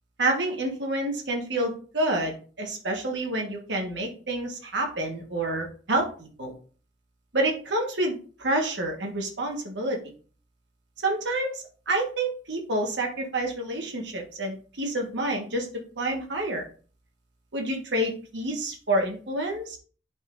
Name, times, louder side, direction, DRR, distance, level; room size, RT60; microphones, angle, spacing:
voice 1, 0.2-6.5 7.3-10.0 11.0-15.7 16.0-16.6 17.5-19.8, right 1 dB, 70° right, 1 dB, 1.5 m, -28 dB
11.5 x 4.2 x 2.6 m, 0.40 s
head